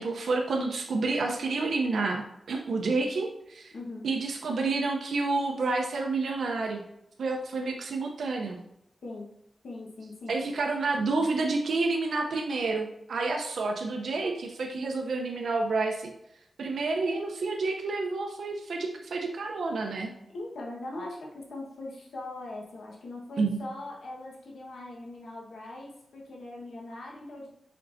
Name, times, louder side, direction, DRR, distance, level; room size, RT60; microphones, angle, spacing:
voice 1, 0.0-3.7 4.0-6.8 7.2-8.6 10.3-16.1 16.6-20.1 23.4-23.6, right 3 dB, 85° right, 1 dB, 0.7 m, -29 dB
voice 2, 3.7-4.0 9.0-9.3 9.6-10.3 20.3-27.5, left 2 dB, 80° left, -2 dB, 1.4 m, -40 dB
6.6 x 5.4 x 2.7 m, 0.80 s
wide cardioid pair, 135°, 0 cm